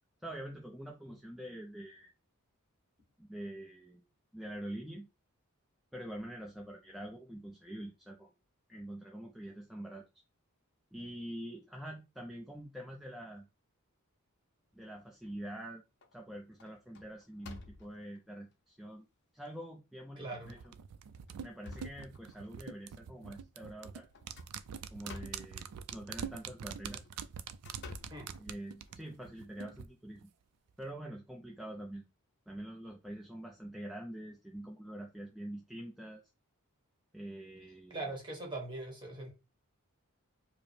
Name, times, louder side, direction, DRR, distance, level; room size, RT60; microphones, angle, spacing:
voice 1, 0.2-2.1 3.2-4.0 4.3-5.1 5.9-8.3 8.7-10.0 10.9-13.5 14.7-15.8 16.1-19.0 19.3-20.7 21.4-24.1 24.9-27.0 28.4-30.3 30.8-32.1 32.5-36.2 37.1-38.1, right 1 dB, ahead, 0.4 m, -45 dB
sound 1, 15.0-15.6 16.0-16.3 16.6-18.2 18.9-19.0 19.4-19.5 20.4-20.7 21.1-22.6 24.1-25.6 26.7-29.0, left 3 dB, 50° left, 0.6 m, -51 dB
voice 2, 20.2-20.5 28.1-28.3 37.9-39.3, right 2 dB, 20° right, 1.2 m, -41 dB
sound 2, 20.4-29.9 30.2-30.3, right 7 dB, 90° right, 0.4 m, -45 dB
4.8 x 2.0 x 3.2 m
head